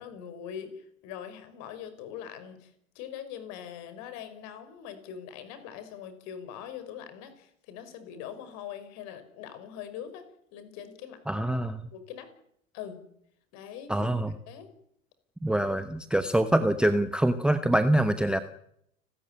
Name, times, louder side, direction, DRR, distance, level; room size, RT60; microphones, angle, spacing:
voice 1, 0.0-10.2 10.5-11.2 11.9-12.3 12.7-13.0 13.5-14.1 14.5-14.7, left 9 dB, 40° left, 11 dB, 5.9 m, -42 dB
voice 2, 11.3-11.8 13.9-14.3 15.4-18.4, right 1 dB, ahead, 12 dB, 1.0 m, -25 dB
30.0 x 14.5 x 10.0 m, 0.73 s
figure-of-eight pair, 90°, 41 cm